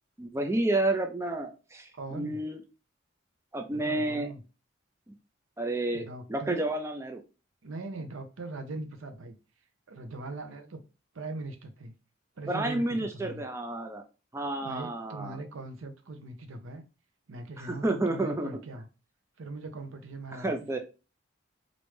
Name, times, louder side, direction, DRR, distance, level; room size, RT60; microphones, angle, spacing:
voice 1, 0.2-2.6 3.5-4.3 5.1-5.2 5.6-6.0 6.3-7.2 12.5-14.0 14.3-15.4 17.6-18.6 20.3-20.8, right 2 dB, 15° right, 0.3 m, -30 dB
voice 2, 1.9-2.4 3.7-4.4 5.9-6.7 7.6-9.3 9.9-10.8 11.1-11.9 12.4-13.4 14.6-16.8 17.3-18.9 19.4-20.8, right 2 dB, 90° right, 0.6 m, -41 dB
3.2 x 2.5 x 3.1 m
head